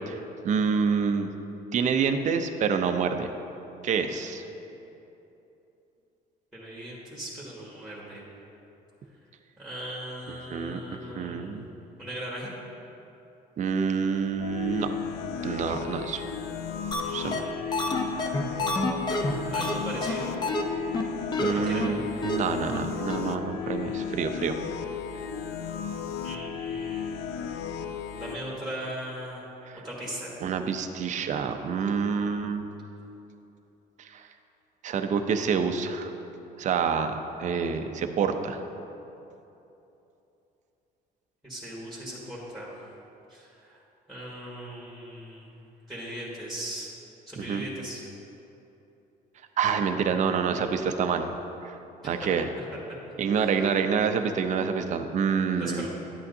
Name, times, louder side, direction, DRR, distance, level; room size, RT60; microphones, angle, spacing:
voice 1, 0.4-1.3 1.7-3.3 3.8-4.4 10.3-11.7 13.6-14.9 15.4-16.2 17.1-17.4 21.4-24.6 29.7-29.8 30.4-32.6 34.0-34.2 34.8-36.1 36.6-38.6 47.4-47.6 49.6-51.3 51.6-51.8 52.0-52.5 53.2-55.9, right 6 dB, 45° right, 7 dB, 0.6 m, -27 dB
voice 2, 6.5-8.2 9.6-11.5 12.0-12.5 17.0-18.1 19.5-20.4 21.4-21.9 26.2-27.3 28.1-29.5 29.8-30.3 41.4-42.7 43.3-43.8 44.1-45.5 45.9-46.9 47.3-48.0 52.2-52.3 53.3-53.7 55.6-55.9, right 1 dB, ahead, -6 dB, 1.7 m, -39 dB
sound 1, 14.4-28.4, left 7 dB, 85° left, 0.5 m, -35 dB
sound 2, 16.9-17.0 17.3-17.4 17.7-19.7 20.0-20.1 20.4-20.6 20.9-21.0 21.3-21.5 21.8-21.9 22.2-22.4 22.7-22.8 23.1-23.2, left 2 dB, 25° left, 0.8 m, -27 dB
11.0 x 8.4 x 2.7 m, 2.9 s
cardioid pair, 110°, 17 cm